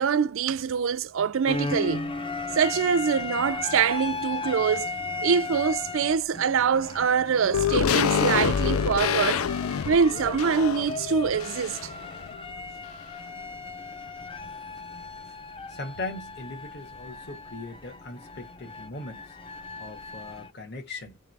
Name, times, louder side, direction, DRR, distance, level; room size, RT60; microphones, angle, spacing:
voice 1, 0.0-2.2 2.6-4.9 5.2-9.5 9.9-11.9, right 6 dB, 65° right, 0.4 m, -24 dB
sound 1, 1.4-20.5, left 3 dB, 25° left, 0.6 m, -36 dB
sound 2, 7.5-12.0 12.3-12.4, left 7 dB, 85° left, 0.4 m, -26 dB
voice 2, 15.7-19.4 19.8-21.2, left 2 dB, 55° left, 1.5 m, -39 dB
3.6 x 3.0 x 4.6 m
head